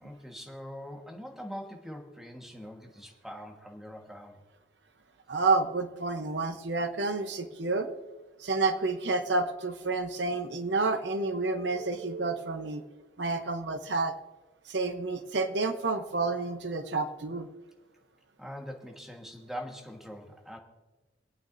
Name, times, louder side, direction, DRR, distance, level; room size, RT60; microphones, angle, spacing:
voice 1, 0.0-4.4 18.4-20.6, equal, ahead, 2 dB, 1.4 m, -43 dB
voice 2, 5.3-7.9 8.4-12.8 13.2-14.1 14.7-17.5, right 3 dB, 70° right, 8 dB, 0.8 m, -29 dB
25.5 x 9.0 x 2.6 m, 1.2 s
head